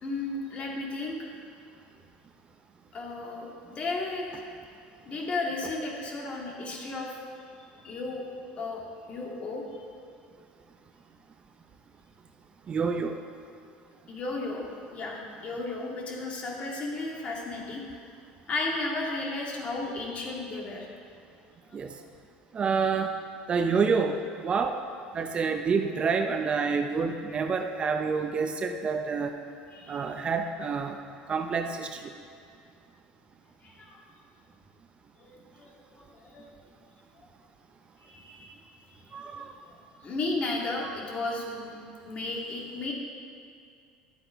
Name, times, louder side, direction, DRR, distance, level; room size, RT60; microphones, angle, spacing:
voice 1, 0.0-1.3 2.9-4.4 5.0-7.1 7.8-8.3 8.6-9.6 14.1-18.0 18.5-20.9 29.7-30.0 33.6-34.0 35.2-36.5 38.0-38.6 38.9-39.5 40.0-41.8 42.1-42.9, left 2 dB, 40° left, -1 dB, 2.2 m, -34 dB
voice 2, 12.7-13.2 21.7-21.9 22.5-23.1 23.5-24.8 25.1-29.3 29.9-31.0 31.3-32.1 39.1-39.5 40.8-41.0, right 5 dB, 30° right, 6 dB, 0.6 m, -28 dB
11.0 x 7.8 x 5.1 m, 2.3 s
supercardioid pair, 105°, 3 cm